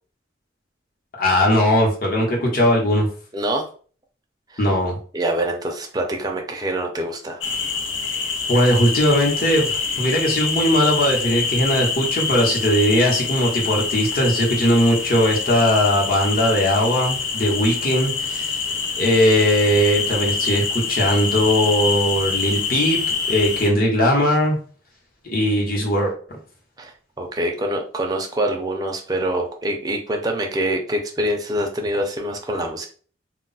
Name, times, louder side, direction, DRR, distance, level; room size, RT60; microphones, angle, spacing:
voice 1, 1.2-3.1 4.6-5.0 8.5-18.6 19.0-23.0 23.3-24.6 25.3-26.1, equal, 50° left, -2 dB, 1.0 m, -19 dB
voice 2, 3.3-3.7 4.5-4.7 5.1-7.4 26.8-32.9, right 1 dB, 20° right, 2 dB, 0.5 m, -25 dB
sound 1, 7.4-23.7, left 5 dB, 80° left, 0.5 m, -25 dB
2.3 x 2.0 x 3.9 m, 0.42 s
head